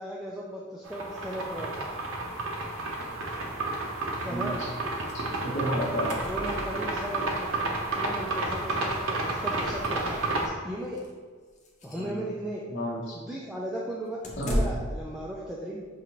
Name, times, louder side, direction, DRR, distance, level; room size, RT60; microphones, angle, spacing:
voice 1, 0.0-1.9 4.2-4.6 6.2-7.5 7.9-10.3 10.6-11.1 11.8-12.6 13.1-15.9, right 1 dB, 5° right, -6 dB, 0.3 m, -36 dB
sound 1, 0.9-10.5, right 2 dB, 75° right, 0.6 m, -31 dB
voice 2, 4.2-4.7 5.1-6.1 11.9-12.3 12.7-13.1 14.4-14.7, equal, 60° left, -3 dB, 1.0 m, -32 dB
sound 2, 5.1-5.3 5.5-5.6 5.8-7.1 8.4-8.5 8.8-8.9 9.4-10.4 10.9-11.1 11.6-12.1 14.2-15.1, equal, 35° left, 0.6 m, -34 dB
5.6 x 2.5 x 3.0 m, 1.5 s
head